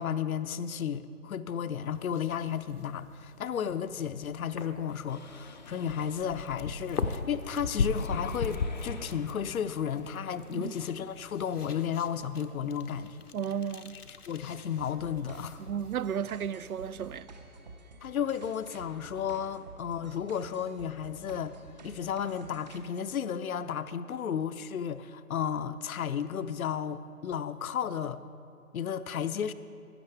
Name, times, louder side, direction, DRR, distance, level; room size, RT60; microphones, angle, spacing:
voice 1, 0.0-13.3 14.3-15.6 18.0-21.5 21.8-28.2 28.7-29.5, left 8 dB, 70° left, 0.6 m, -33 dB
sound 1, 1.8-17.2, left 4 dB, 90° left, 0.9 m, -39 dB
Mechanisms, 5.1-11.0, left 5 dB, 30° left, 0.5 m, -48 dB
voice 2, 13.3-14.0 15.6-17.3, right 8 dB, 75° right, 0.5 m, -34 dB
sound 2, 14.8-22.8, right 3 dB, 30° right, 0.7 m, -50 dB
15.5 x 12.0 x 3.4 m
figure-of-eight pair, 145°, 45 cm